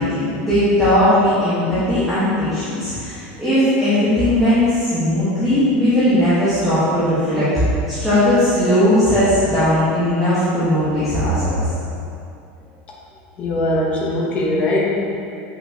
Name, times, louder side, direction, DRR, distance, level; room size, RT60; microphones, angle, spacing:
voice 1, 0.0-7.5 7.9-11.7, left 1 dB, ahead, -15 dB, 1.4 m, -18 dB
voice 2, 13.4-14.8, left 1 dB, 25° left, -5 dB, 1.1 m, -20 dB
8.0 x 5.7 x 2.9 m, 2.6 s
supercardioid pair, 180°, 5 cm